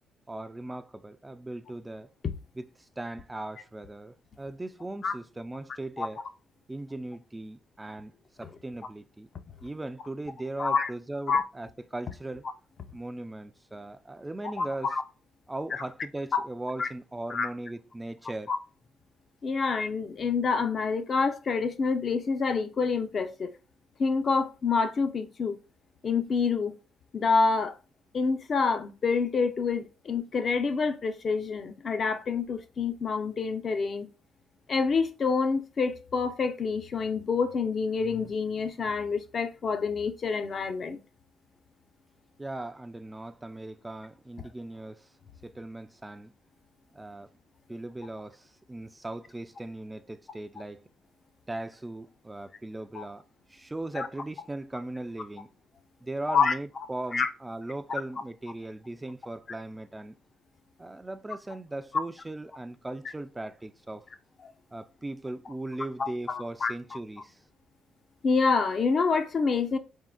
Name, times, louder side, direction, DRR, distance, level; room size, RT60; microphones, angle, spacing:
voice 1, 0.3-2.1 2.6-6.2 6.7-8.1 8.4-9.3 9.6-12.4 12.9-14.9 15.5-18.5 42.4-45.1 45.4-46.3 46.9-47.3 47.7-50.8 51.5-53.2 53.5-55.5 56.0-60.1 60.8-64.1 64.7-67.4, right 2 dB, 15° right, 0.3 m, -38 dB
voice 2, 10.6-10.9 11.3-11.4 14.6-15.0 15.7-15.8 16.3-16.4 16.8-16.9 17.3-17.5 18.5-18.6 19.4-23.5 24.0-25.6 26.0-26.8 27.1-27.8 28.1-34.1 34.7-41.0 52.9-53.0 53.9-54.1 56.3-56.5 57.1-57.3 64.4-64.5 66.0-66.7 68.2-69.8, left 5 dB, 45° left, 0.5 m, -27 dB
4.1 x 3.6 x 2.2 m
cardioid pair, 90°, 0 cm